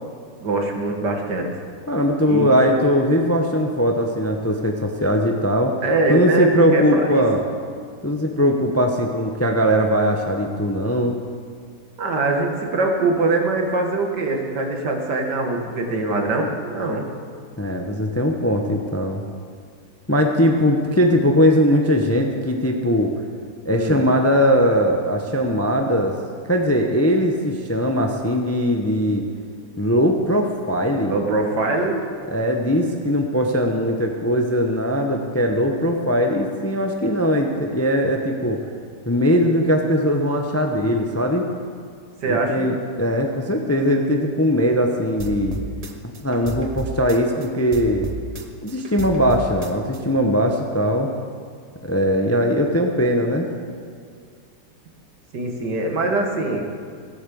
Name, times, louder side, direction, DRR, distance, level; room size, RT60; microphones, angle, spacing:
voice 1, 0.4-1.5 2.3-2.6 5.8-7.3 12.0-17.1 23.7-24.0 31.1-32.0 42.2-42.7 55.3-56.6, right 2 dB, 70° right, 2 dB, 2.2 m, -22 dB
voice 2, 1.9-5.7 6.1-7.4 8.0-11.2 17.6-19.2 20.1-23.1 23.6-26.1 26.5-29.2 29.8-31.1 32.3-38.6 39.1-41.5 42.3-45.5 46.0-48.1 48.6-51.1 51.8-53.5, equal, 15° left, 3 dB, 0.7 m, -20 dB
sound 1, 45.2-47.5 47.7-50.0, right 3 dB, 35° right, 0.6 m, -32 dB
16.5 x 8.6 x 7.0 m, 2.1 s
omnidirectional pair, 1.9 m